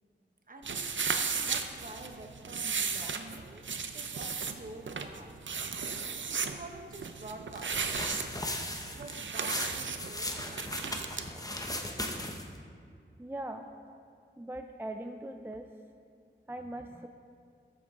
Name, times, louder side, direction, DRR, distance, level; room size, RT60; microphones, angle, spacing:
voice 1, 0.5-0.9 1.2-5.4 6.4-8.0 8.8-11.2, right 2 dB, 45° right, 3 dB, 1.0 m, -48 dB
sound 1, 0.6-11.3, right 5 dB, 70° right, 0.6 m, -35 dB
sound 2, 7.6-12.6, left 1 dB, 20° left, 0.9 m, -37 dB
voice 2, 13.2-13.6 14.4-15.7 16.5-17.1, right 1 dB, 10° right, 5 dB, 0.4 m, -40 dB
12.5 x 7.4 x 3.7 m, 2.3 s
wide cardioid pair, 80°, 20 cm